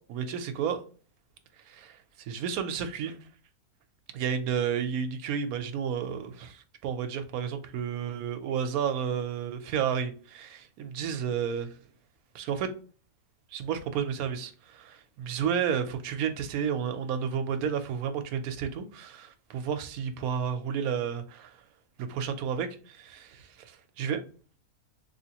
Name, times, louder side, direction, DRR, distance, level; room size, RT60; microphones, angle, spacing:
voice 1, 0.1-0.8 1.6-3.2 4.1-11.7 12.3-12.7 13.5-21.6 22.0-24.2, right 7 dB, 75° right, 1.0 m, -31 dB
3.4 x 2.8 x 2.8 m
omnidirectional pair, 1.6 m